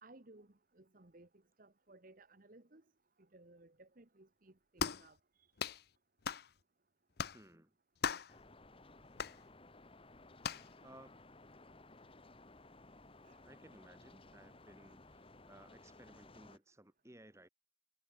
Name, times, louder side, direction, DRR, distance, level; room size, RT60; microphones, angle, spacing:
voice 1, 0.0-2.8 3.2-5.6 13.2-13.4, right 2 dB, 45° right, 1.4 m, -61 dB
sound 1, 4.8-5.1 5.6-5.8 6.2-6.5 7.2-7.4 8.0-8.3 9.2-9.4 10.4-10.7, left 6 dB, 55° left, 0.6 m, -38 dB
voice 2, 7.3-7.7 10.8-11.2 13.4-17.5, right 1 dB, 15° right, 1.8 m, -59 dB
sound 2, 8.3-16.6, left 2 dB, 30° left, 1.7 m, -59 dB
head